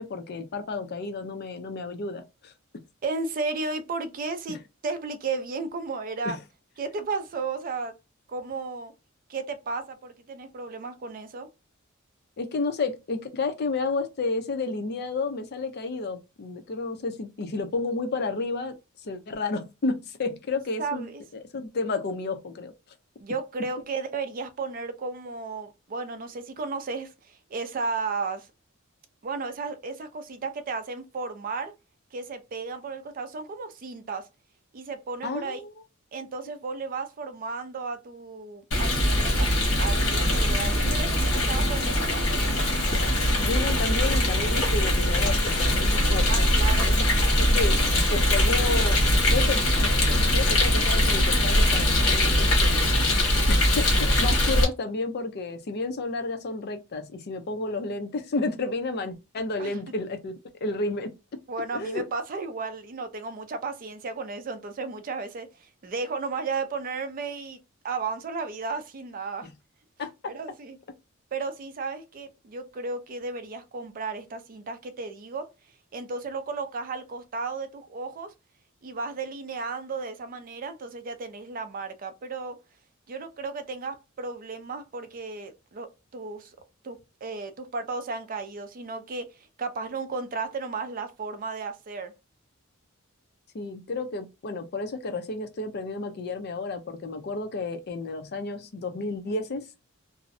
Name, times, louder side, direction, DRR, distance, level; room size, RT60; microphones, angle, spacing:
voice 1, 0.0-2.5 4.5-4.6 6.2-6.4 12.4-18.8 19.0-21.1 21.3-22.7 35.2-35.7 43.4-46.5 46.8-47.0 47.4-49.0 49.3-52.9 53.5-60.3 60.6-61.1 61.7-62.0 69.4-69.5 70.0-70.1 93.5-99.7, left 3 dB, 50° left, 0.5 m, -31 dB
voice 2, 3.0-6.4 6.8-7.9 8.3-8.9 9.3-11.5 20.8-21.2 23.2-28.5 29.2-31.7 32.1-34.3 34.7-35.6 36.1-39.5 39.8-42.3 46.3-47.1 59.6-59.8 61.5-67.6 67.8-69.5 70.3-70.8 71.3-75.5 75.9-78.3 78.8-82.6 83.1-86.6 86.8-92.1, right 4 dB, 40° right, 0.4 m, -34 dB
Rain, 38.7-54.6, left 1 dB, 80° left, 1.1 m, -22 dB
2.5 x 2.0 x 2.5 m
head